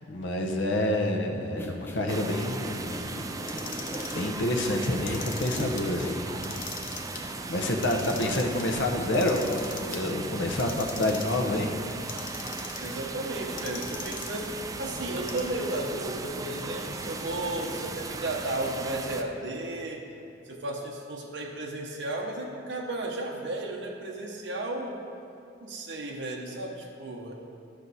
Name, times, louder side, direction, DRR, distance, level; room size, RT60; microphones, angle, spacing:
voice 1, 0.1-3.3 4.1-6.5 7.2-7.3 7.5-11.7, left 1 dB, 75° left, 3 dB, 0.9 m, -28 dB
sound 1, 1.4-6.7, equal, 10° left, 0.7 m, -42 dB
sound 2, 2.1-19.2, right 3 dB, 20° right, 0.4 m, -37 dB
Clock, 3.4-4.2 4.9-5.8 6.3-7.2 7.7-8.6 9.1-10.0 10.5-11.4 11.9-12.9 13.6-14.5 15.1-15.8, left 6 dB, 45° left, 0.8 m, -40 dB
voice 2, 12.8-14.5 14.8-20.1 20.4-25.0 25.6-27.3, right 2 dB, 70° right, -1 dB, 0.9 m, -34 dB
11.5 x 6.4 x 4.1 m, 2.6 s
head